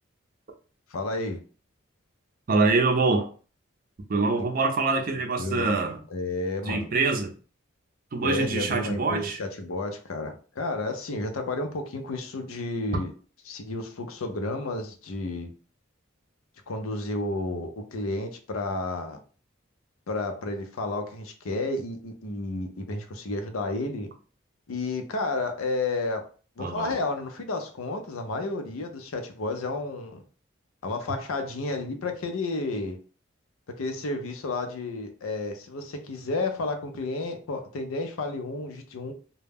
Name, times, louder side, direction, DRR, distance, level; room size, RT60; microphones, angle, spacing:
voice 1, 0.9-1.4 4.4-4.5 5.4-5.7 6.1-6.9 8.2-13.1 13.5-15.5 16.7-19.2 20.1-24.1 24.7-26.3 26.6-30.2 30.8-33.0 33.7-39.1, left 2 dB, 90° left, 0.5 m, -31 dB
voice 2, 2.5-3.3 4.1-6.0 6.7-7.3 8.1-9.4 26.6-26.9, right 3 dB, 45° right, 0.4 m, -24 dB
2.2 x 2.0 x 3.3 m
head